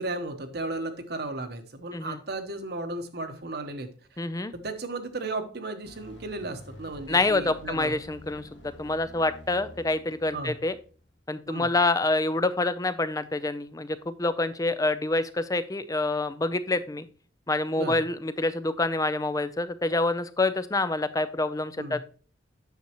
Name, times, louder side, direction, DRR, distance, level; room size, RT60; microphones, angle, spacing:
voice 1, 0.0-4.2 4.5-7.9 10.3-10.6 11.5-11.7 17.8-18.0 21.8-22.0, right 2 dB, 60° right, 8 dB, 1.1 m, -35 dB
voice 2, 4.2-4.5 7.1-10.7 11.3-17.1 17.5-22.0, left 2 dB, 20° left, 13 dB, 0.5 m, -27 dB
sound 1, 5.8-11.1, left 1 dB, 75° left, 1.7 m, -49 dB
9.3 x 6.8 x 3.0 m, 0.39 s
head